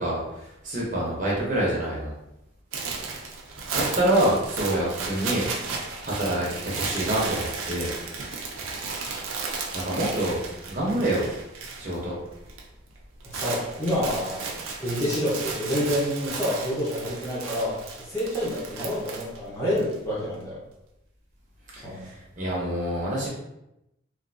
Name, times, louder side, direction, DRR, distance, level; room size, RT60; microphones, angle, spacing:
voice 1, 0.0-2.1 3.7-5.7 6.0-7.9 9.7-10.4 10.6-11.3 11.8-12.2 21.7-23.3, right 1 dB, 40° right, -5 dB, 0.8 m, -26 dB
sound 1, 2.7-12.0 12.3-12.6 12.9-19.9, right 4 dB, 90° right, 0.5 m, -34 dB
voice 2, 13.3-17.8 18.1-20.6 21.8-22.1, equal, 15° left, -9 dB, 0.7 m, -28 dB
3.3 x 2.5 x 2.6 m, 0.87 s
head